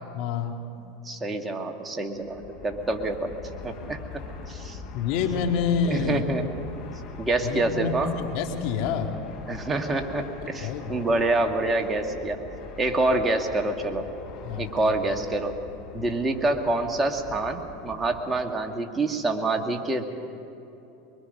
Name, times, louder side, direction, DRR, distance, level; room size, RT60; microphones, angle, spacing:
voice 1, 0.1-0.6 4.9-6.2 7.4-9.1 10.6-10.8 14.4-14.9, left 6 dB, 60° left, 4 dB, 2.1 m, -27 dB
voice 2, 0.8-3.3 3.6-4.0 4.5-4.8 5.9-6.5 7.2-8.1 9.5-12.4 12.8-14.1 14.6-15.6 15.9-20.0, right 2 dB, 20° right, 4 dB, 1.9 m, -26 dB
Fixed-wing aircraft airplane, 2.1-18.5, left 4 dB, 45° left, 6.6 m, -42 dB
23.5 x 23.0 x 5.4 m, 2.9 s
hypercardioid pair, 95°, 0 cm